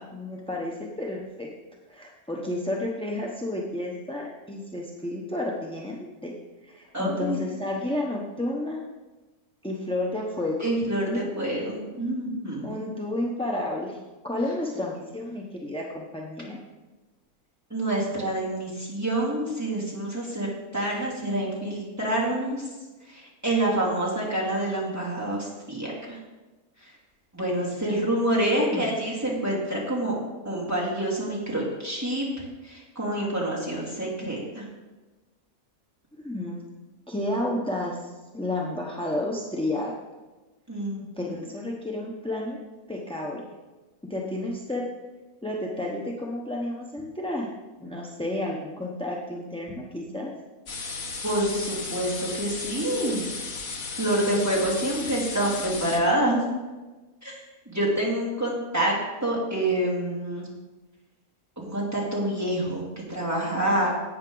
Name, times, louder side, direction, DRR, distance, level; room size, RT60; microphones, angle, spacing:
voice 1, 0.1-1.5 1.9-6.3 6.6-8.8 9.6-10.7 11.0-11.6 12.6-14.0 14.2-16.6 28.6-29.0 36.2-36.6 37.1-39.9 41.2-42.6 42.9-43.4 44.1-44.8 45.4-47.5 47.8-50.3 63.7-64.0, left 1 dB, 5° left, -2 dB, 0.6 m, -31 dB
voice 2, 6.9-7.4 10.6-12.7 17.7-22.7 23.1-26.2 26.8-26.9 27.3-30.2 30.4-34.7 40.7-41.3 51.2-53.2 54.0-56.4 57.2-57.4 57.7-58.9 59.2-60.5 61.6-63.9, right 1 dB, 10° right, -5 dB, 2.8 m, -27 dB
sound 1, 50.7-56.0, left 4 dB, 60° left, 1.6 m, -34 dB
11.5 x 8.6 x 3.9 m, 1.2 s
omnidirectional pair, 1.6 m